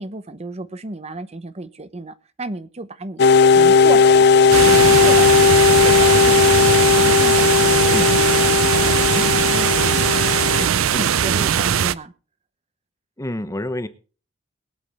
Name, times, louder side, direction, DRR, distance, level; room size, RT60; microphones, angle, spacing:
voice 1, 0.0-3.3 3.6-4.3 4.6-6.6 6.9-10.8 11.1-12.1, right 2 dB, 30° right, 12 dB, 0.8 m, -33 dB
sound 1, 3.2-10.7, left 5 dB, 55° left, 0.6 m, -15 dB
sound 2, 4.5-11.9, right 8 dB, 85° right, 0.5 m, -19 dB
voice 2, 13.2-13.9, left 1 dB, 15° left, 11 dB, 0.8 m, -27 dB
22.0 x 8.3 x 3.4 m, 0.38 s
head